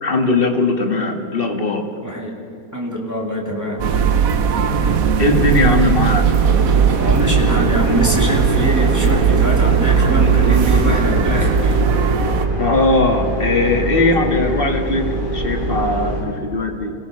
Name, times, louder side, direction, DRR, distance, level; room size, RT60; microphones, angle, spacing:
voice 1, 0.0-1.9 5.2-6.3 12.6-16.9, left 3 dB, 40° left, 3 dB, 2.1 m, -19 dB
voice 2, 2.0-2.3 2.7-3.8 7.0-11.8, equal, 10° right, -3 dB, 3.3 m, -23 dB
sound 1, 3.8-12.5, right 7 dB, 70° right, 1.4 m, -17 dB
sound 2, 6.3-16.2, right 1 dB, 35° right, 6.0 m, -24 dB
26.5 x 18.0 x 6.1 m, 2.7 s
omnidirectional pair, 1.5 m